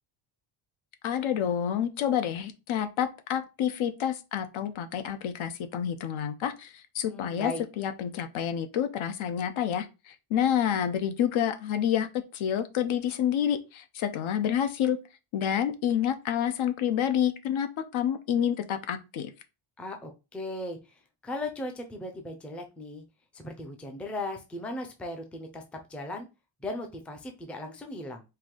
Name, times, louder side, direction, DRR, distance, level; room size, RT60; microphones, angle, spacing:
voice 1, 1.0-15.0 15.3-19.3, left 9 dB, 70° left, 0.8 m, -28 dB
voice 2, 7.0-7.6 19.8-20.8 21.2-23.0 23.3-26.3 26.6-28.2, left 2 dB, 5° left, 0.4 m, -37 dB
4.5 x 2.6 x 3.7 m
cardioid pair, 165°, 50 cm